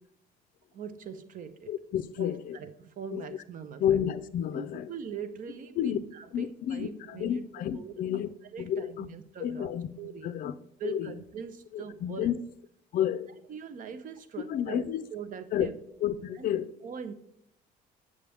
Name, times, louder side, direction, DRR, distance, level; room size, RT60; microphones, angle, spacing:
voice 1, 0.7-1.7 2.2-4.0 4.5-7.4 7.7-8.2 8.5-9.7 10.0-10.4 10.8-12.4 13.5-15.8 16.3-16.5 16.8-17.1, right 7 dB, 50° right, 11 dB, 0.8 m, -42 dB
voice 2, 1.7-2.6 3.1-3.3 3.8-4.9 5.8-6.0 6.3-9.1 9.4-9.9 10.2-10.5 10.8-11.1 11.7-12.4 12.9-13.3 14.5-15.0 15.5-15.7 16.0-16.7, left 10 dB, 55° left, 12 dB, 0.4 m, -30 dB
8.3 x 6.6 x 3.5 m, 0.73 s
cardioid pair, 110°, 17 cm